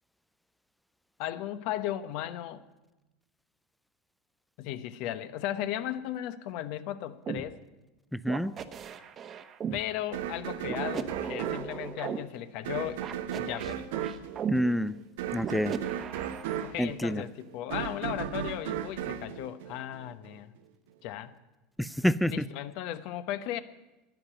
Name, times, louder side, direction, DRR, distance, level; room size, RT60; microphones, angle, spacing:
voice 1, 1.2-2.6 4.6-7.6 9.7-13.0 13.3-13.8 16.6-20.5 21.0-21.3 22.3-23.6, left 12 dB, 65° left, 0.9 m, -36 dB
sound 1, 7.3-7.4 8.3-9.8 10.7-12.2 13.0-14.6 15.4-16.7, right 7 dB, 35° right, 1.0 m, -36 dB
voice 2, 8.1-8.5 14.5-14.9 15.3-15.8 16.8-17.2 21.8-22.4, equal, ahead, 0.4 m, -27 dB
sound 2, 10.1-20.3, right 10 dB, 80° right, 1.0 m, -36 dB
10.5 x 10.0 x 9.0 m
supercardioid pair, 105°, 0 cm